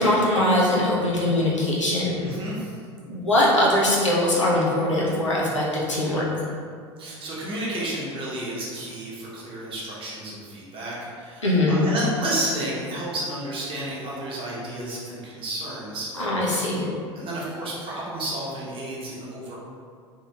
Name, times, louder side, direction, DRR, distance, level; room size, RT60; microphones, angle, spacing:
voice 1, 0.0-2.1 3.1-6.5 11.4-11.9 16.2-16.8, left 1 dB, 90° left, -6 dB, 0.6 m, -21 dB
voice 2, 2.1-2.7 7.0-16.4 17.2-19.6, right 1 dB, 35° right, -6 dB, 0.9 m, -31 dB
2.8 x 2.7 x 2.3 m, 2.2 s
figure-of-eight pair, 75°, 15 cm